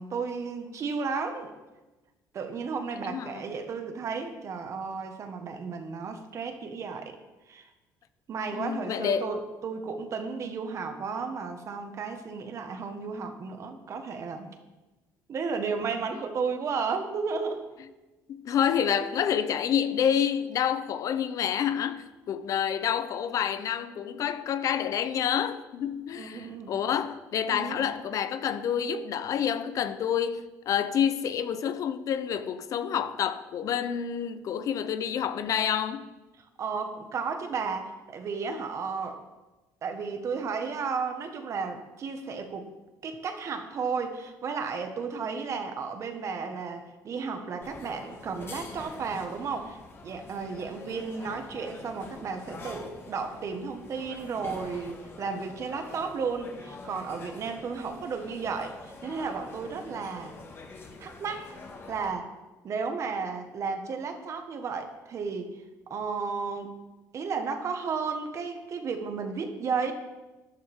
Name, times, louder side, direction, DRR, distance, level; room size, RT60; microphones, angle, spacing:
voice 1, 0.0-1.5 2.3-7.2 7.5-7.7 8.3-14.5 15.3-17.7 26.2-26.7 27.5-27.8 28.6-28.7 36.6-39.2 39.8-42.7 43.0-60.4 61.0-61.5 61.9-62.3 62.6-65.6 65.9-66.8 67.1-69.9, right 5 dB, 45° right, 1.5 m, -33 dB
voice 2, 3.0-3.4 8.5-9.3 18.3-36.1, left 8 dB, 55° left, 0.7 m, -28 dB
sound 1, 47.6-62.1, left 3 dB, 35° left, 1.7 m, -45 dB
12.5 x 11.0 x 3.6 m
cardioid pair, 115°, 7 cm